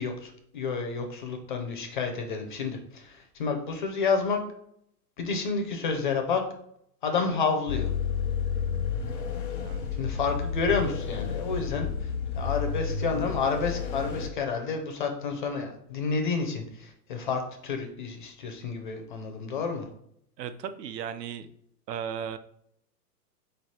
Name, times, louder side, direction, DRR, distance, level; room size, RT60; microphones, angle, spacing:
voice 1, 0.0-4.4 5.2-6.4 7.0-7.9 10.0-19.9, left 5 dB, 35° left, 4 dB, 0.4 m, -30 dB
sound 1, 7.7-14.3, left 6 dB, 85° left, 1.0 m, -31 dB
voice 2, 20.4-21.5 21.9-22.4, right 8 dB, 80° right, 11 dB, 0.6 m, -35 dB
4.0 x 3.3 x 4.1 m, 0.70 s
hypercardioid pair, 150°, 49 cm